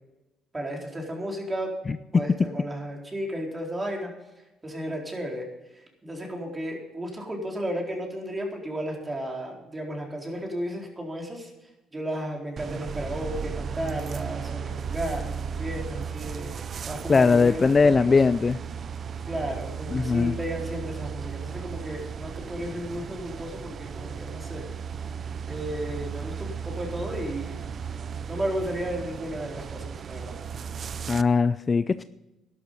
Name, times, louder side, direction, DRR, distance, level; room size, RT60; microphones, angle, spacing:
voice 1, 0.5-1.7 2.1-4.1 4.6-5.5 5.7-11.5 11.9-16.5 16.8-18.2 19.3-24.7 25.5-27.7 28.0-30.3, right 1 dB, 20° right, 0 dB, 4.0 m, -34 dB
sound 1, 12.6-31.2, right 6 dB, 45° right, 0.4 m, -35 dB
voice 2, 17.1-18.6 19.9-20.3 31.1-32.0, left 4 dB, 30° left, 14 dB, 0.4 m, -20 dB
12.0 x 11.5 x 5.6 m, 0.99 s
cardioid pair, 110°, 0 cm